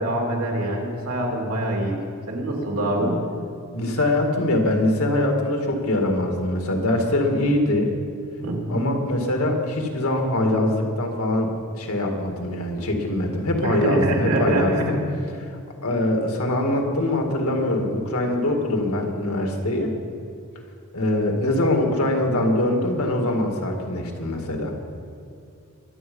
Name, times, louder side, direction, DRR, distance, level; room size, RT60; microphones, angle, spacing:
voice 1, 0.0-2.0 2.3-3.2 8.4-8.8 13.6-14.9, right 1 dB, 85° right, -1 dB, 3.2 m, -24 dB
voice 2, 3.7-7.9 8.7-15.0 15.8-19.9 20.9-24.7, left 1 dB, 85° left, 2 dB, 2.1 m, -23 dB
22.5 x 8.6 x 5.5 m, 2.5 s
head